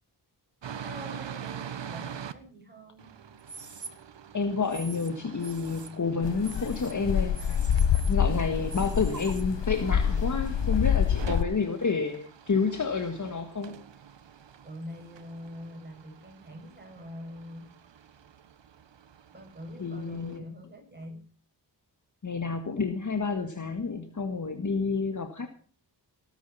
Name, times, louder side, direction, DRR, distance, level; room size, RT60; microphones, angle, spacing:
sound 1, 0.6-2.3 3.0-20.4, right 8 dB, 80° right, 1.4 m, -45 dB
voice 1, 0.8-3.1 14.6-17.7 19.3-21.2, equal, 25° right, 1 dB, 6.8 m, -44 dB
sound 2, 3.4-3.9 4.6-5.1 5.4-5.9 6.4-6.9 7.3-8.3 8.7-9.4, right 4 dB, 40° right, 2.5 m, -44 dB
voice 2, 4.3-7.4 8.1-13.7 19.8-20.4 22.2-25.5, left 4 dB, 45° left, 7 dB, 1.8 m, -29 dB
sound 3, 6.2-11.4, left 8 dB, 80° left, 1.0 m, -26 dB
19.0 x 10.0 x 5.7 m, 0.40 s
wide cardioid pair, 105°, 43 cm